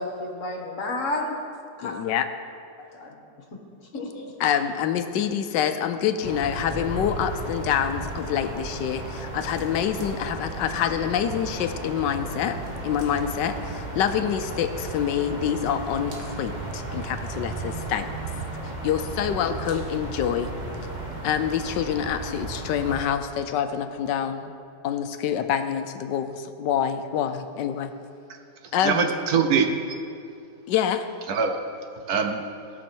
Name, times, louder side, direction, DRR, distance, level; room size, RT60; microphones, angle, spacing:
voice 1, 0.0-1.4 1.8-1.9 2.9-3.1 3.9-4.3, left 2 dB, 45° left, 1 dB, 1.6 m, -31 dB
voice 2, 1.8-2.3 3.9-4.0 4.4-12.6 12.8-18.1 18.8-20.5 21.2-24.5 24.8-27.9 28.7-29.0 30.7-31.0, left 9 dB, 85° left, 9 dB, 1.3 m, -26 dB
sound 1, 6.2-23.0, right 2 dB, 30° right, 1.1 m, -34 dB
voice 3, 28.6-29.8 31.3-31.6 32.0-32.4, right 6 dB, 65° right, 5 dB, 1.2 m, -23 dB
19.0 x 6.4 x 4.4 m, 2.5 s
omnidirectional pair, 1.9 m